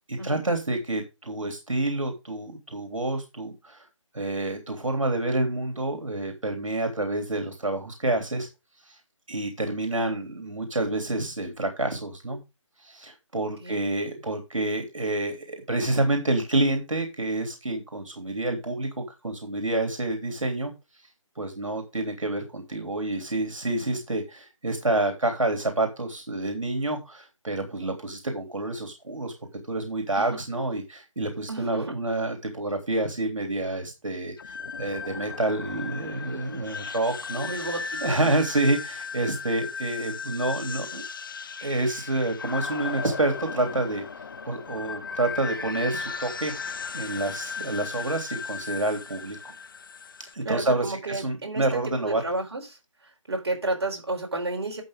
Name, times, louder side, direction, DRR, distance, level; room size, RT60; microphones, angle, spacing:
voice 1, 0.1-3.8 4.1-8.5 8.8-9.0 9.3-12.4 12.8-20.7 21.4-29.3 29.7-37.5 38.0-41.0 41.6-44.0 44.5-49.5 50.3-52.2, right 2 dB, 80° right, 4 dB, 3.2 m, -28 dB
voice 2, 31.5-31.9 37.4-38.3 50.4-51.6 52.0-52.7 53.3-54.8, right 2 dB, 50° right, 1 dB, 4.4 m, -31 dB
sound 1, 34.4-50.3, left 5 dB, 40° left, 0.8 m, -36 dB
11.5 x 7.4 x 3.7 m, 0.26 s
figure-of-eight pair, 160°, 17 cm